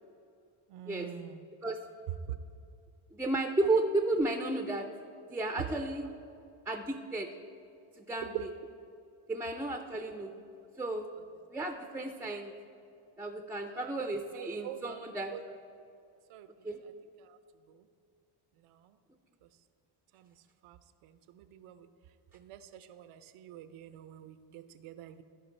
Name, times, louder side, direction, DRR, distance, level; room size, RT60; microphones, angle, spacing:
voice 1, 0.7-1.4 2.3-2.4 8.3-8.4 13.7-13.9 14.3-15.0 15.3-15.4 16.3-16.5 20.6-20.8 21.3-21.9 22.3-25.2, right 12 dB, 85° right, 11 dB, 0.7 m, -44 dB
voice 2, 3.1-4.9 5.3-6.1 6.7-7.3 8.0-8.5 9.3-10.3 10.8-11.1 11.5-12.5 13.2-15.3 16.6-16.8, right 2 dB, 5° right, 5 dB, 0.3 m, -33 dB
14.0 x 5.1 x 4.3 m, 2.5 s
cardioid pair, 100°, 49 cm